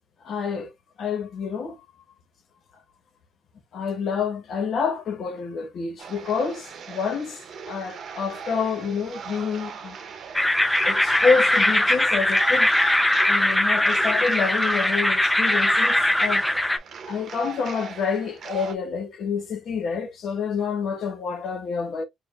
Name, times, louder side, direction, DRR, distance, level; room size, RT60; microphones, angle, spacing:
voice 1, 0.2-0.7 1.0-1.8 3.7-7.4 7.7-10.0 10.8-12.7 13.3-16.5 17.1-22.0, left 5 dB, 65° left, 1.3 m, -28 dB
sound 1, 6.0-18.7, right 6 dB, 60° right, 0.8 m, -39 dB
sound 2, 10.3-16.8, left 1 dB, 5° left, 0.5 m, -21 dB
5.1 x 2.5 x 2.5 m
cardioid pair, 90°, 0 cm